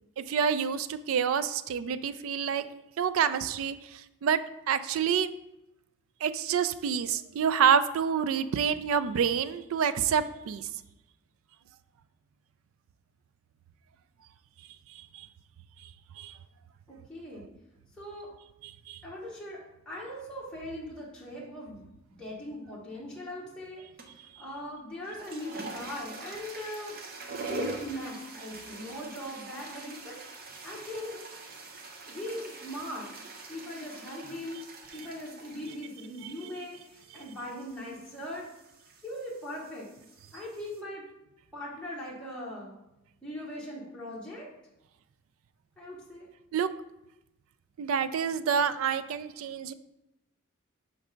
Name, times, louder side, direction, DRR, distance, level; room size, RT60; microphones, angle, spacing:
voice 1, 0.3-2.7 3.0-5.3 6.2-10.7 15.1-15.3 15.8-15.9 16.2-16.3 18.6-19.0 36.2-36.3 46.5-46.7 47.8-49.7, right 7 dB, 70° right, 13 dB, 0.3 m, -28 dB
voice 2, 16.9-17.5 18.0-18.3 19.0-19.6 19.9-21.8 22.1-27.0 27.5-30.2 30.6-31.2 32.1-33.1 33.5-34.6 34.9-38.5 39.0-39.9 40.3-41.0 41.5-42.7 43.2-44.5 45.8-46.3, left 1 dB, 5° left, -7 dB, 1.0 m, -40 dB
sound 1, 24.0-24.3 25.0-40.8, right 3 dB, 45° right, 0.7 m, -44 dB
6.1 x 3.3 x 5.0 m, 0.92 s
head